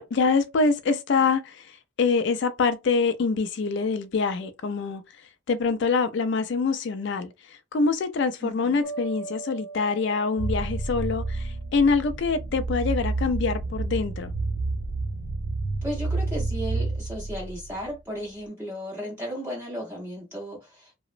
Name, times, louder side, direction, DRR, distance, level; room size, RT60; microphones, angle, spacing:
voice 1, 0.0-1.7 2.0-5.0 5.5-7.3 7.7-14.3, left 4 dB, 60° left, 0.3 m, -25 dB
voice 2, 8.4-8.8 15.8-20.9, equal, 10° right, 0.5 m, -35 dB
sound 1, 8.8-11.9, right 4 dB, 35° left, 0.7 m, -40 dB
sound 2, 10.4-17.9, right 3 dB, 65° right, 0.5 m, -29 dB
2.9 x 2.0 x 2.4 m
head